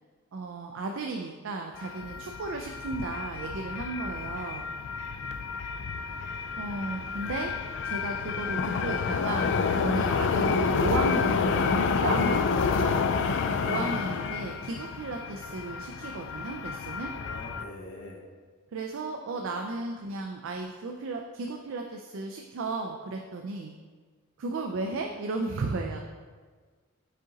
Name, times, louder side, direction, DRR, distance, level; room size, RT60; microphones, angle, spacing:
voice 1, 0.3-4.6 6.6-7.5 7.8-12.9 13.6-17.1 18.7-23.7 24.4-26.0, right 3 dB, 60° right, 3 dB, 0.4 m, -34 dB
sound 1, 1.8-17.6, left 5 dB, 55° left, 0.3 m, -29 dB
voice 2, 17.1-18.2, left 1 dB, 75° left, -1 dB, 1.1 m, -43 dB
6.4 x 3.8 x 3.9 m, 1.5 s
head